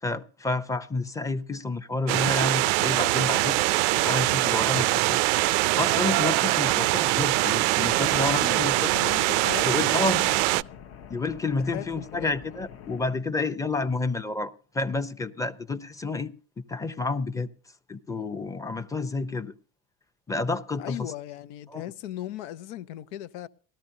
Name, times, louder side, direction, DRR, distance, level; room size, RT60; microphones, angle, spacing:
voice 1, 0.0-3.6 3.9-5.2 5.5-8.8 9.6-10.2 11.1-16.3 16.7-17.5 17.9-19.5 20.3-21.0 21.7-21.8, left 3 dB, 10° left, 0.7 m, -29 dB
sound 1, 2.1-10.6, right 20 dB, 80° right, 0.5 m, -23 dB
sound 2, 7.8-13.2, left 8 dB, 40° left, 0.9 m, -45 dB
voice 2, 8.4-10.4 11.6-12.3 20.8-23.5, left 13 dB, 85° left, 0.9 m, -38 dB
19.5 x 14.0 x 2.7 m
supercardioid pair, 125°, 34 cm